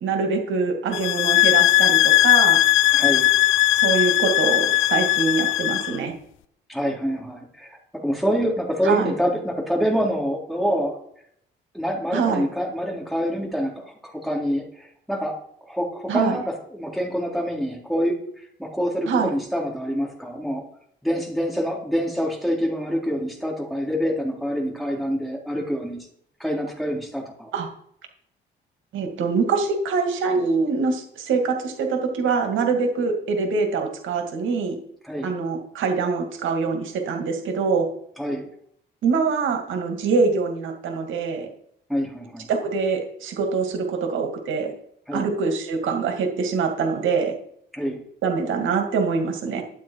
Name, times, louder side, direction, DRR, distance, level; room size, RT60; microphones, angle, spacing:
voice 1, 0.0-2.6 3.8-6.1 8.8-9.1 12.1-12.4 16.1-16.4 19.1-19.3 27.5-27.7 28.9-34.8 35.2-37.9 39.0-41.5 42.5-44.7 45.1-47.3 48.2-49.6, right 5 dB, 80° right, 4 dB, 2.2 m, -24 dB
sound 1, 0.9-6.0, left 16 dB, 85° left, 0.6 m, -18 dB
voice 2, 2.9-3.3 6.7-11.0 11.7-15.4 15.7-20.6 21.0-26.1 26.4-27.5 35.0-35.3 38.2-38.5 41.9-42.5 45.1-45.3 47.7-48.0, equal, ahead, -1 dB, 3.8 m, -26 dB
12.0 x 9.0 x 4.6 m, 0.68 s
cardioid pair, 90°, 20 cm